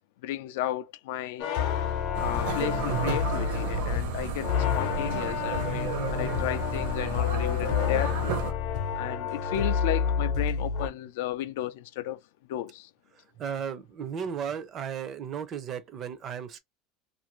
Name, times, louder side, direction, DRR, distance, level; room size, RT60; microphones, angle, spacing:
voice 1, 0.2-1.5 2.2-8.4 9.0-12.2 12.5-12.9, left 13 dB, 75° left, 0.3 m, -34 dB
sound 1, 1.4-10.9, left 7 dB, 55° left, 0.7 m, -29 dB
sound 2, 2.1-8.5, right 6 dB, 75° right, 0.8 m, -33 dB
voice 2, 13.4-16.6, right 7 dB, 30° right, 0.4 m, -35 dB
2.5 x 2.5 x 2.9 m
cardioid pair, 170°, 0 cm